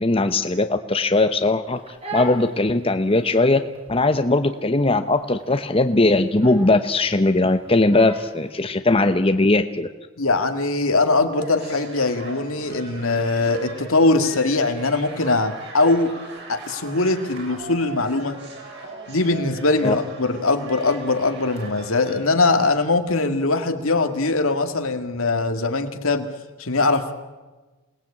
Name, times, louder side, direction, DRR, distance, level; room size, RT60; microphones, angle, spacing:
voice 1, 0.0-1.8 2.1-9.9 19.8-19.9, left 2 dB, 25° left, 8 dB, 0.9 m, -19 dB
Crying sobbing, 1.7-8.5, equal, 25° right, 3.5 m, -39 dB
voice 2, 10.2-16.1 16.5-18.4 19.1-26.3 26.6-27.1, left 3 dB, 75° left, 7 dB, 2.3 m, -21 dB
sound 1, 11.4-22.2, right 3 dB, 50° right, 6.2 m, -39 dB
28.0 x 19.0 x 8.7 m, 1.2 s
head